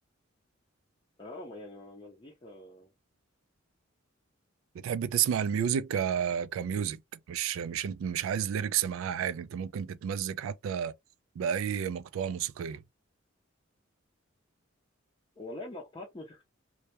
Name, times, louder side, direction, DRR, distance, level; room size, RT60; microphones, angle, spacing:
voice 1, 1.2-2.9 15.4-16.4, left 2 dB, 25° left, 0.5 m, -44 dB
voice 2, 4.7-10.9 11.4-12.8, right 8 dB, 80° right, 0.3 m, -31 dB
2.2 x 2.1 x 2.8 m
head